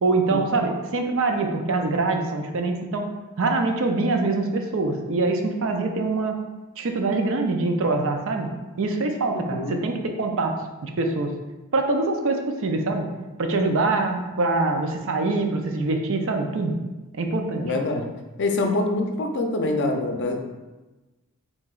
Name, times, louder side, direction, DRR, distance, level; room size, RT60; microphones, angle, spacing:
voice 1, 0.0-3.0 3.4-6.4 6.8-8.5 8.8-10.5 10.8-11.3 11.7-13.1 13.4-16.8 17.1-17.6, right 3 dB, 60° right, 4 dB, 0.5 m, -24 dB
voice 2, 9.3-9.8 17.6-18.1 18.4-20.4, left 2 dB, 55° left, 4 dB, 0.5 m, -25 dB
4.8 x 3.9 x 2.4 m, 1.1 s
head